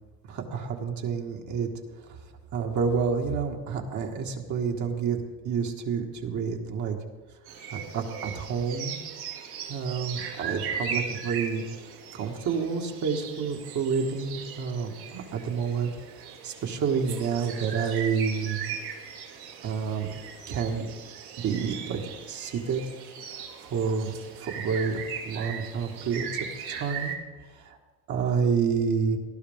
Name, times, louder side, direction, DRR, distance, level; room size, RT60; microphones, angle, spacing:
voice 1, 0.3-1.7 2.1-2.2 2.5-5.2 5.4-7.0 7.7-9.0 9.7-11.6 12.1-15.9 16.4-18.6 19.6-20.1 20.5-20.9 21.4-22.0 22.3-22.8 23.6-27.1 27.5-27.8 28.1-29.2, right 6 dB, 50° right, 1 dB, 1.8 m, -29 dB
sound 1, 7.4-27.1, right 7 dB, 75° right, 2.4 m, -38 dB
18.5 x 11.5 x 3.6 m, 1.3 s
cardioid pair, 125°, 38 cm